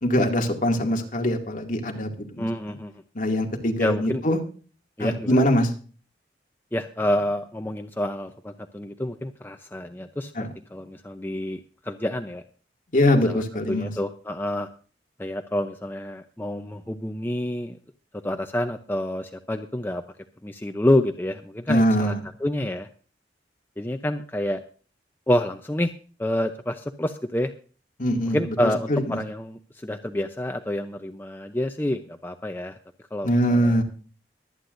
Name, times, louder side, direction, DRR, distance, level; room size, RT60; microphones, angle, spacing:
voice 1, 0.0-2.5 3.1-4.4 5.0-5.7 10.4-10.5 12.9-13.9 21.7-22.2 28.0-29.2 33.2-33.8, equal, 45° left, 2 dB, 2.4 m, -22 dB
voice 2, 2.4-3.0 3.8-4.2 5.0-5.4 6.7-10.3 10.7-12.4 13.3-13.4 13.7-14.7 15.2-17.8 18.2-20.0 20.4-22.1 22.4-22.9 23.8-24.6 25.3-25.9 26.2-27.5 28.3-32.8 33.1-33.8, left 1 dB, 10° left, 6 dB, 0.7 m, -28 dB
23.0 x 9.6 x 2.6 m, 0.39 s
head